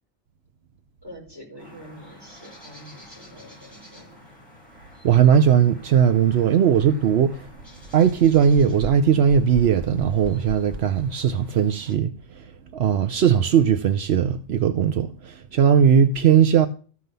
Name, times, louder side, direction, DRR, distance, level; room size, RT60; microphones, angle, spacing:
voice 1, 1.0-4.3, equal, 20° right, 5.2 m, -45 dB
sound 1, 1.6-11.9, left 1 dB, ahead, 6.4 m, -49 dB
voice 2, 5.0-7.5 7.9-16.7, right 8 dB, 75° right, 0.9 m, -19 dB
sound 2, 6.8-6.9 7.3-11.4, equal, 45° right, 0.7 m, -38 dB
14.0 x 4.8 x 6.8 m
omnidirectional pair, 1.1 m